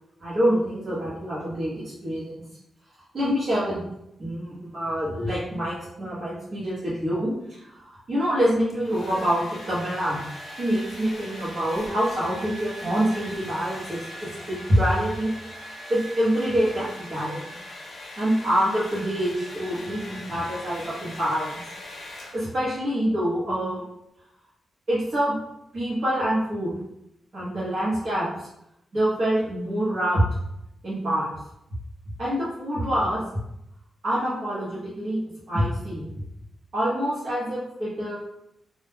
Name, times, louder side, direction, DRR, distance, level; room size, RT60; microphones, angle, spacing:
voice 1, 0.2-2.3 3.1-3.8 4.2-10.2 10.6-14.0 14.5-15.3 15.9-17.4 18.2-21.5 22.3-23.8 24.9-25.4 25.7-26.7 27.3-28.5 28.9-30.2 30.8-31.3 32.2-33.4 34.0-35.2 35.5-36.0 36.7-38.2, equal, 45° right, -10 dB, 0.8 m, -26 dB
Domestic sounds home sounds, 8.5-22.7, left 1 dB, 50° left, 0.5 m, -41 dB
2.2 x 2.1 x 3.2 m, 0.82 s
wide cardioid pair, 170°, 0 cm